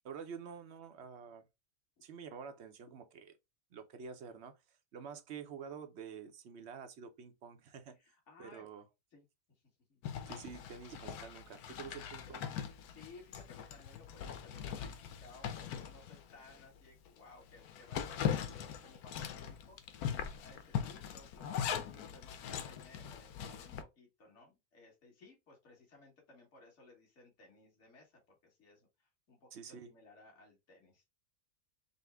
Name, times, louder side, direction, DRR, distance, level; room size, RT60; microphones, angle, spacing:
voice 1, 0.0-1.5 2.0-3.3 3.7-8.0 8.4-8.8 10.3-12.5 29.5-29.9, right 6 dB, 60° right, 0.8 m, -48 dB
voice 2, 8.0-8.7 9.1-9.3 9.9-10.1 12.8-31.0, left 3 dB, 50° left, 1.9 m, -60 dB
Zipper (clothing), 10.0-16.7 17.1-17.2 17.5-23.8, left 8 dB, 90° left, 1.1 m, -41 dB
5.3 x 2.1 x 3.4 m
omnidirectional pair, 1.5 m